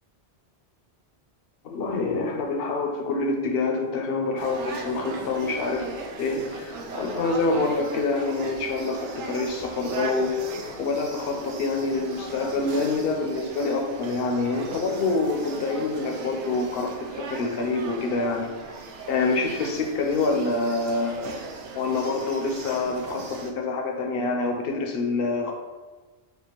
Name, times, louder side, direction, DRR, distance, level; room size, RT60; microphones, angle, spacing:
voice 1, 1.6-5.9 6.2-10.4 10.8-18.6 19.1-21.2 21.7-25.5, left 3 dB, 60° left, 2 dB, 0.8 m, -26 dB
sound 1, 4.4-23.5, right 4 dB, 80° right, 0.9 m, -38 dB
5.2 x 2.4 x 2.9 m, 1.3 s
omnidirectional pair, 1.2 m